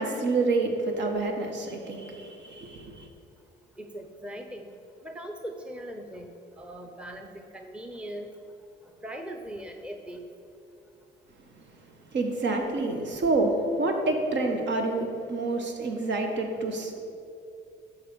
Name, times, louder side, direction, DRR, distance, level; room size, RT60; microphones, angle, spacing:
voice 1, 0.0-3.1 12.1-17.0, right 2 dB, 65° right, 3 dB, 1.5 m, -28 dB
voice 2, 3.8-4.7 5.0-6.3 6.6-8.3 9.0-10.2, equal, 5° right, 4 dB, 0.8 m, -40 dB
11.5 x 4.8 x 7.1 m, 2.6 s
cardioid pair, 90°, 20 cm